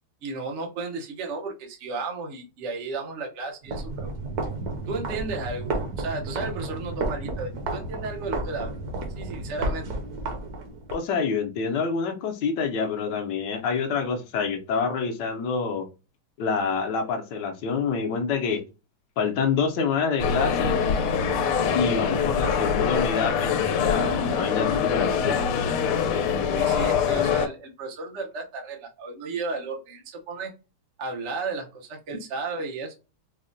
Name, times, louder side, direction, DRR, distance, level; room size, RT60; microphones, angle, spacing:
voice 1, 0.2-4.1 4.9-8.8 9.2-9.9 26.5-30.5 31.0-32.9, right 3 dB, 75° right, 1 dB, 0.6 m, -33 dB
sound 1, 3.6-11.0, right 2 dB, 60° right, 1.1 m, -32 dB
voice 2, 10.9-15.9 16.4-18.6 19.2-20.8 21.7-25.5, left 5 dB, 70° left, 4 dB, 1.1 m, -27 dB
sound 2, 20.2-27.5, left 7 dB, 90° left, 1.5 m, -24 dB
4.8 x 2.1 x 2.5 m, 0.30 s
omnidirectional pair, 2.4 m